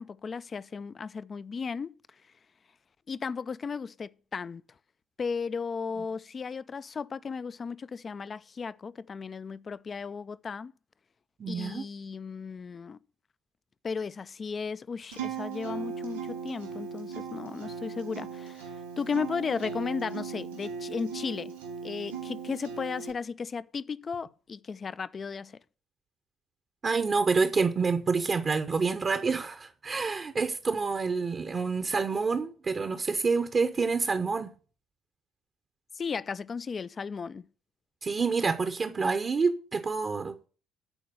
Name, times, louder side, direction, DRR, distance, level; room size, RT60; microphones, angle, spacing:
voice 1, 0.0-2.0 3.1-4.6 5.2-10.7 11.5-13.0 13.8-21.5 21.8-25.6 35.9-37.5, left 5 dB, 35° left, 0.4 m, -35 dB
voice 2, 11.4-11.8 26.8-34.5 38.0-40.5, right 4 dB, 35° right, 0.8 m, -28 dB
Acoustic guitar, 15.1-23.1, right 6 dB, 75° right, 2.4 m, -38 dB
11.0 x 4.6 x 7.7 m
figure-of-eight pair, 50°, 0 cm